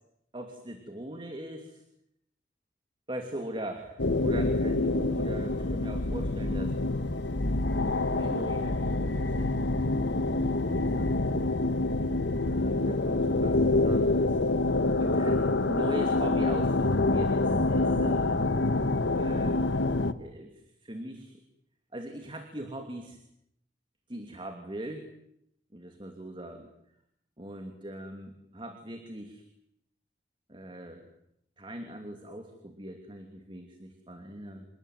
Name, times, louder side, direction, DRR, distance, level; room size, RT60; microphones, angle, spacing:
voice 1, 0.3-1.8 3.1-6.8 7.9-9.6 10.5-11.3 12.0-12.1 12.5-14.6 15.0-18.4 19.1-19.7 20.2-21.4 21.9-23.2 24.1-25.1 25.7-26.7 27.4-29.4 30.5-31.1 31.6-34.7, right 1 dB, 30° right, 5 dB, 2.8 m, -41 dB
sound 1, 4.0-20.1, left 2 dB, 75° left, 1.3 m, -26 dB
28.5 x 20.0 x 9.7 m, 0.78 s
head